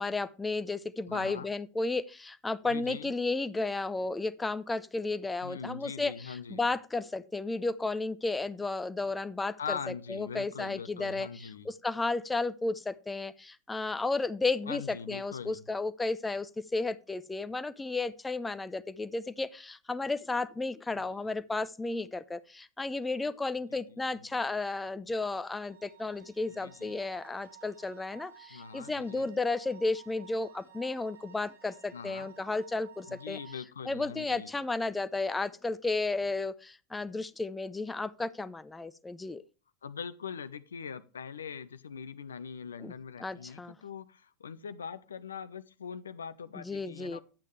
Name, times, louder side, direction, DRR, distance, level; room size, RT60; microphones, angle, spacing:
voice 1, 0.0-9.8 10.1-33.4 33.9-39.4 42.8-42.9 43.2-43.8 46.6-47.2, left 3 dB, 10° left, 0.7 m, -33 dB
voice 2, 1.1-1.5 2.7-3.1 5.4-6.7 9.6-11.7 14.7-15.6 20.9-21.2 23.7-24.4 26.5-27.0 28.5-29.3 31.9-32.3 33.1-34.5 39.8-47.2, left 6 dB, 75° left, 0.7 m, -42 dB
sound 1, 25.4-33.6, right 10 dB, 75° right, 2.1 m, -56 dB
10.0 x 8.3 x 3.2 m
figure-of-eight pair, 85°, 0 cm